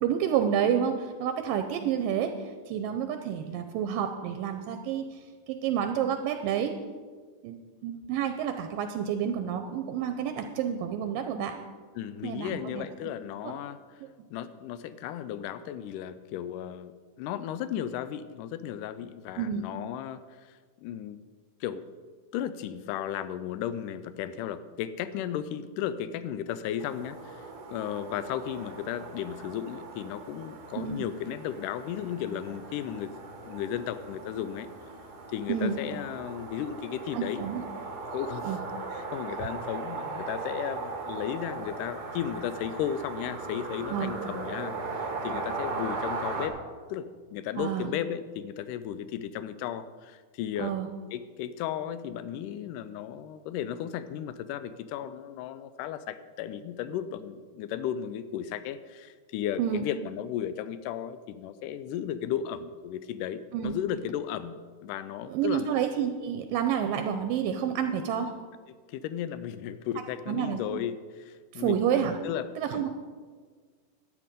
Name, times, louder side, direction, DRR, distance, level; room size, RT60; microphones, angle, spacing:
voice 1, 0.0-2.3 2.7-5.2 5.5-6.7 7.4-7.6 7.8-11.5 12.2-12.9 13.4-13.5 19.4-19.6 30.8-30.9 35.5-35.8 37.1-37.6 38.4-38.6 43.9-44.1 47.6-47.9 50.6-50.9 59.6-59.8 63.5-63.7 65.3-68.3 70.3-70.8 71.5-72.2 72.6-72.9, right 8 dB, 80° right, 7 dB, 2.2 m, -29 dB
voice 2, 12.0-13.8 14.3-21.2 21.6-21.9 22.3-33.2 33.4-34.7 35.3-37.4 38.1-38.6 38.9-46.6 46.9-50.8 51.1-65.7 68.7-71.8 72.2-72.8, left 10 dB, 80° left, 13 dB, 1.9 m, -35 dB
sound 1, 26.8-46.5, right 3 dB, 60° right, 1.0 m, -38 dB
12.0 x 9.4 x 5.2 m, 1.5 s
omnidirectional pair, 4.2 m